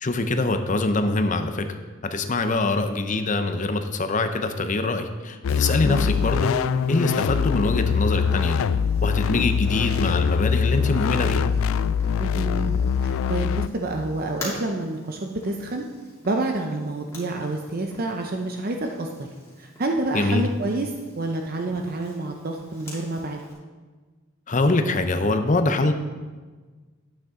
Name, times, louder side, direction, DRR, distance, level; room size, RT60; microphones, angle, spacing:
voice 1, 0.0-1.7 2.0-6.6 6.9-8.7 9.0-11.4 20.1-20.4 24.5-25.9, left 2 dB, 40° left, 7 dB, 0.7 m, -24 dB
sound 1, 5.4-13.7, left 7 dB, 75° left, 0.3 m, -23 dB
Purr, 5.5-23.5, left 1 dB, 15° left, 2.6 m, -46 dB
voice 2, 5.8-6.2 12.2-12.7 13.0-15.8 16.2-19.3 19.6-20.9 21.2-23.4, right 2 dB, 45° right, 3 dB, 0.6 m, -28 dB
10.5 x 8.9 x 3.7 m, 1.4 s
head